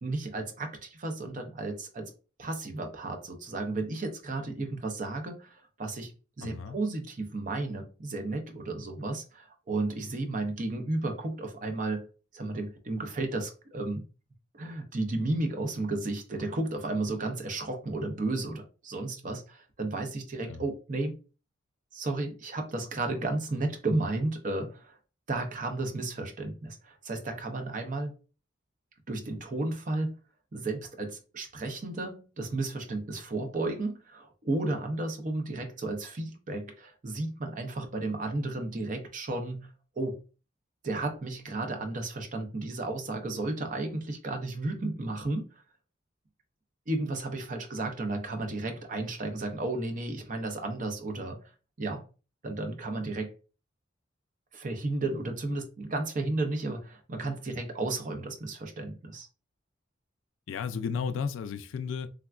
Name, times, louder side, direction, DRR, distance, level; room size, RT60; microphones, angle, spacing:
voice 1, 0.0-2.1 2.4-6.1 6.4-12.1 12.3-14.0 14.5-21.2 21.9-25.0 25.3-28.1 29.1-30.1 30.5-39.7 40.0-40.2 40.8-45.5 46.9-51.4 51.8-52.0 52.4-53.3 54.5-59.3, right 2 dB, 40° right, 0.5 m, -33 dB
voice 2, 6.4-6.8 20.5-20.7 60.5-62.1, left 6 dB, 85° left, 0.3 m, -33 dB
3.4 x 2.2 x 2.3 m
head